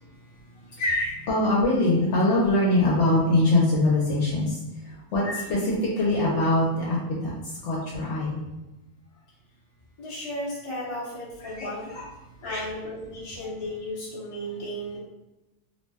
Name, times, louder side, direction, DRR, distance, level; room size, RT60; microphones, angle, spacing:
voice 1, 0.7-4.6 4.8-7.3 7.6-8.4 11.4-12.1 12.5-12.7, left 2 dB, 75° left, -4 dB, 0.9 m, -23 dB
voice 2, 10.0-11.9 12.4-15.0, left 1 dB, 35° left, -7 dB, 0.6 m, -34 dB
2.6 x 2.1 x 3.3 m, 1.0 s
omnidirectional pair, 1.3 m